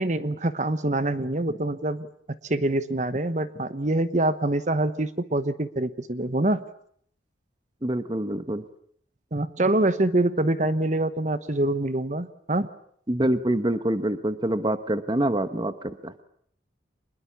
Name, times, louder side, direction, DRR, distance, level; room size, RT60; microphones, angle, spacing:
voice 1, 0.0-2.1 2.4-6.6 9.3-12.7, right 1 dB, 40° right, 12 dB, 1.1 m, -25 dB
voice 2, 7.8-8.6 13.1-16.1, right 1 dB, 25° right, 11 dB, 1.1 m, -26 dB
25.5 x 21.0 x 8.5 m, 0.65 s
head